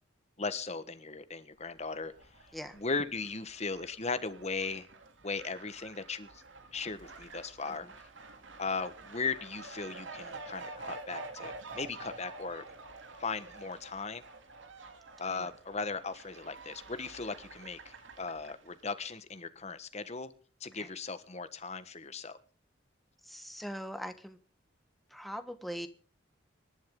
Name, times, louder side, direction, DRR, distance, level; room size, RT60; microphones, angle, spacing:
voice 1, 0.4-2.1 2.7-4.9 5.2-6.4 6.7-7.9 8.6-12.6 13.2-14.2 15.2-20.3 20.6-22.4, left 4 dB, 35° left, 1.4 m, -37 dB
Fowl, 1.7-19.0, right 3 dB, 80° right, 2.9 m, -49 dB
voice 2, 23.2-24.4 25.1-25.9, equal, ahead, 1.4 m, -41 dB
25.5 x 11.5 x 3.8 m
head